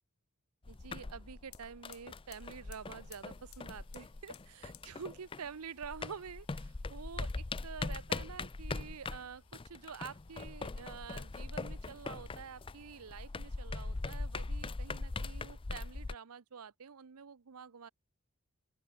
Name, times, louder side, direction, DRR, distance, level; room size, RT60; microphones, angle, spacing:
sound 1, 0.6-5.5 5.8-16.1, left 3 dB, 25° left, 0.5 m, -41 dB
voice 1, 0.7-17.9, right 6 dB, 80° right, 0.7 m, -48 dB
sound 2, 1.4-13.4 13.8-14.6 14.9-15.9, left 14 dB, 75° left, 3.7 m, -64 dB
open air
head